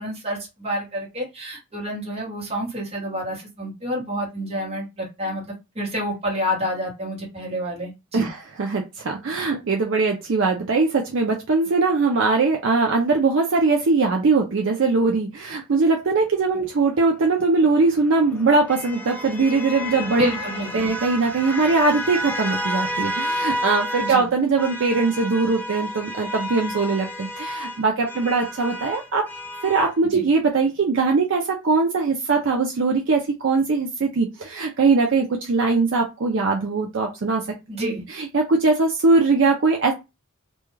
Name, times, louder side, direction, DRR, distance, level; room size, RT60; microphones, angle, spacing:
voice 1, 0.0-8.3 20.1-20.9 24.0-24.3 30.1-30.3 37.7-38.0, equal, 30° right, 1.1 m, -28 dB
voice 2, 8.1-20.3 20.7-29.3 29.6-37.4 37.8-39.9, right 3 dB, 60° right, 0.4 m, -21 dB
sound 1, 17.6-24.2 24.6-29.9, equal, 10° left, 0.3 m, -31 dB
2.3 x 2.3 x 3.1 m
head